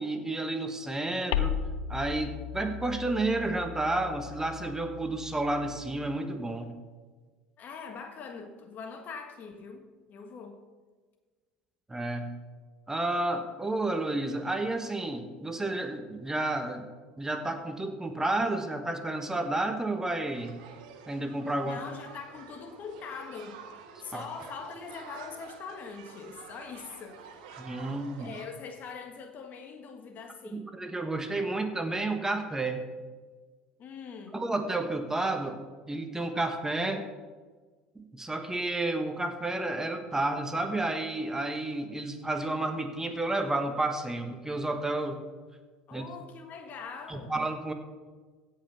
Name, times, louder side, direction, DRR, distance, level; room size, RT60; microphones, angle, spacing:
voice 1, 0.0-1.6 1.9-6.7 11.9-12.3 12.9-16.8 17.2-20.6 21.1-21.8 24.1-24.2 27.6-28.3 30.5-32.8 34.3-35.6 35.9-37.0 37.9-45.2 45.9-46.0 47.1-47.7, right 2 dB, 15° right, 6 dB, 1.2 m, -31 dB
sound 1, 1.3-6.2, left 9 dB, 80° left, 0.6 m, -36 dB
voice 2, 7.6-10.6 21.6-23.6 24.0-27.6 28.2-30.7 33.8-34.4 45.9-47.4, left 5 dB, 45° left, 5 dB, 1.6 m, -43 dB
sound 2, 20.3-28.5, right 7 dB, 75° right, 1.3 m, -49 dB
16.0 x 5.6 x 5.7 m, 1.4 s
hypercardioid pair, 80°, 4 cm